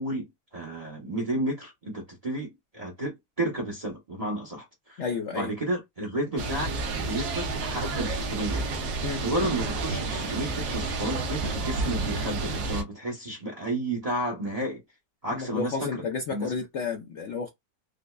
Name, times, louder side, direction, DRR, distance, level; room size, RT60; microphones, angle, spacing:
voice 1, 0.0-5.0 5.3-8.7 9.2-14.8 15.2-16.0 16.3-16.5, right 1 dB, 35° right, 0.6 m, -32 dB
voice 2, 5.0-5.5 9.0-9.2 15.3-17.5, left 5 dB, 85° left, 0.6 m, -31 dB
sound 1, 6.4-12.8, right 3 dB, 85° right, 1.4 m, -30 dB
5.0 x 2.1 x 2.2 m
omnidirectional pair, 1.9 m